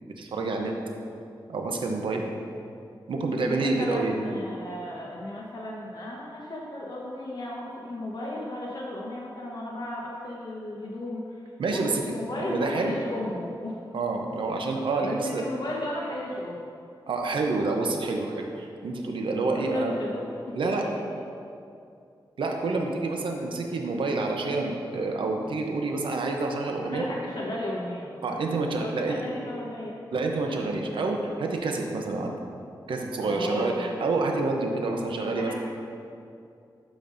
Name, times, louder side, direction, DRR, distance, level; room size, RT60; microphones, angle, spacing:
voice 1, 0.2-0.7 1.5-2.3 3.1-4.2 11.6-12.0 12.5-13.0 13.9-15.4 17.1-20.0 20.6-20.8 22.4-27.0 28.2-29.2 30.1-32.4 32.9-35.5, right 3 dB, 85° right, 2 dB, 0.7 m, -28 dB
voice 2, 3.4-13.8 15.0-16.6 19.5-20.5 20.8-21.2 26.8-30.0 33.2-33.9 35.3-35.5, left 1 dB, 60° left, -3 dB, 1.0 m, -35 dB
12.5 x 5.1 x 2.6 m, 2.5 s
wide cardioid pair, 80°, 8 cm